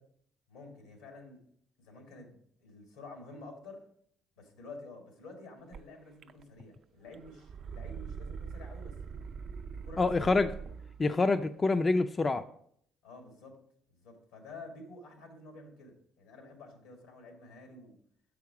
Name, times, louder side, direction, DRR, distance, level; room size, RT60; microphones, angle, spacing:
voice 1, 0.5-1.4 1.8-3.8 4.4-9.3 9.7-10.3 10.6-10.7 13.0-13.6 14.0-18.0, left 2 dB, 85° left, 3 dB, 1.8 m, -50 dB
sound 1, 5.7-5.8 6.2-6.8 7.1-11.0, right 6 dB, 55° right, 0.4 m, -43 dB
voice 2, 10.0-10.5 11.0-12.5, left 3 dB, 30° left, 9 dB, 0.4 m, -26 dB
6.7 x 4.9 x 4.7 m, 0.66 s
supercardioid pair, 70°, 0 cm